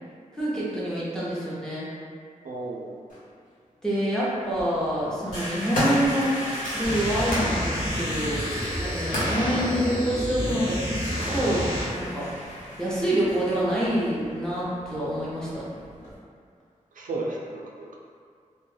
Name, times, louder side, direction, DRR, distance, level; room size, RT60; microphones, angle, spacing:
voice 1, 0.3-1.9 3.8-6.3 6.7-8.4 8.7-11.0 11.3-12.3 12.8-15.6, equal, 5° left, -9 dB, 0.6 m, -27 dB
voice 2, 2.4-3.0 16.9-18.0, right 2 dB, 90° right, -3 dB, 0.4 m, -33 dB
sound 1, 3.1-3.2 4.3-4.7 5.2-7.5 8.0-9.5 10.3-10.4, left 1 dB, 85° left, 0.8 m, -31 dB
sound 2, 4.5-16.1, equal, 60° left, 1.2 m, -37 dB
sound 3, 6.8-11.8, equal, 40° left, 1.1 m, -30 dB
2.2 x 2.1 x 3.1 m, 2.1 s
wide cardioid pair, 130°, 14 cm